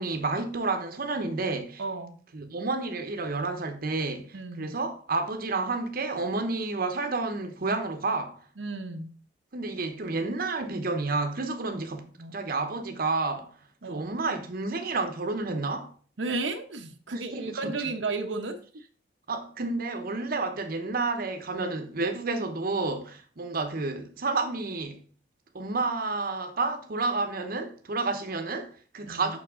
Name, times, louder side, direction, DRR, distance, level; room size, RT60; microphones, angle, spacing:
voice 1, 0.0-1.8 2.3-8.4 9.5-13.5 13.9-15.9 17.1-17.7 19.3-25.0 25.5-29.4, right 3 dB, 55° right, 0.9 m, -30 dB
voice 2, 1.8-2.1 4.3-4.7 8.6-9.1 12.2-12.4 13.8-14.1 16.2-18.6 29.0-29.4, right 3 dB, 85° right, 0.9 m, -33 dB
7.1 x 5.9 x 3.7 m
head